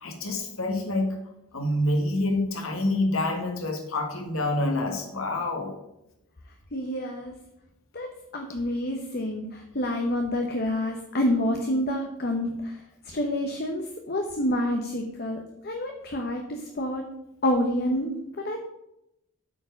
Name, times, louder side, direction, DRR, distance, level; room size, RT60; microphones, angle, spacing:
voice 1, 0.0-1.2 1.5-5.7, left 1 dB, 65° left, 3 dB, 1.7 m, -27 dB
voice 2, 6.7-7.3 7.9-17.0 17.4-18.6, left 1 dB, 45° left, 3 dB, 0.8 m, -28 dB
8.3 x 4.6 x 6.9 m, 0.85 s
head